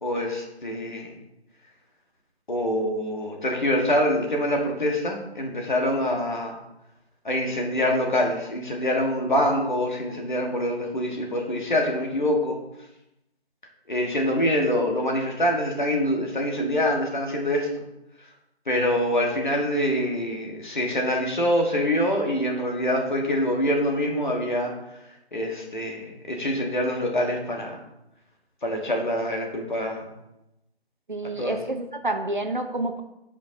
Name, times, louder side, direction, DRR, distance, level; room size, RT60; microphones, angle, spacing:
voice 1, 0.0-1.1 2.5-6.6 7.3-12.6 13.9-17.7 18.7-24.7 25.3-27.8 28.6-30.0 31.4-31.6, left 1 dB, 45° left, 1 dB, 1.6 m, -25 dB
voice 2, 31.1-33.0, right 2 dB, 50° right, 6 dB, 0.8 m, -28 dB
13.5 x 5.2 x 2.8 m, 0.88 s
figure-of-eight pair, 165°, 32 cm